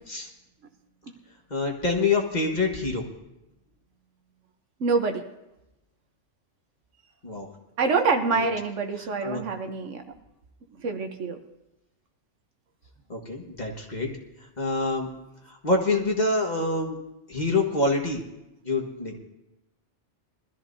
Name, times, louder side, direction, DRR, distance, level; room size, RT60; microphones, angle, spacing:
voice 1, 1.5-3.0 7.2-7.5 8.3-8.4 9.0-9.4 13.1-14.1 14.6-15.1 15.5-17.0 17.3-18.2 18.6-19.2, left 3 dB, 35° left, 1 dB, 1.6 m, -26 dB
voice 2, 4.8-5.2 7.8-10.0 10.8-11.4, right 4 dB, 75° right, 5 dB, 1.3 m, -25 dB
21.5 x 13.5 x 2.7 m, 0.92 s
omnidirectional pair, 1.3 m